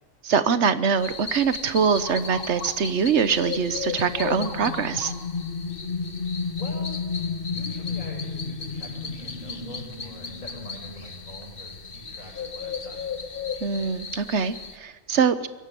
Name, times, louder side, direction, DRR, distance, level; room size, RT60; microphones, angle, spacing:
voice 1, 0.2-5.1 13.6-15.5, right 6 dB, 60° right, 13 dB, 1.2 m, -23 dB
sound 1, 1.0-14.8, left 5 dB, 45° left, 1.4 m, -33 dB
voice 2, 6.6-7.1 7.5-13.1, left 1 dB, 85° left, -2 dB, 7.5 m, -44 dB
22.5 x 17.0 x 7.0 m, 1.3 s
omnidirectional pair, 1.4 m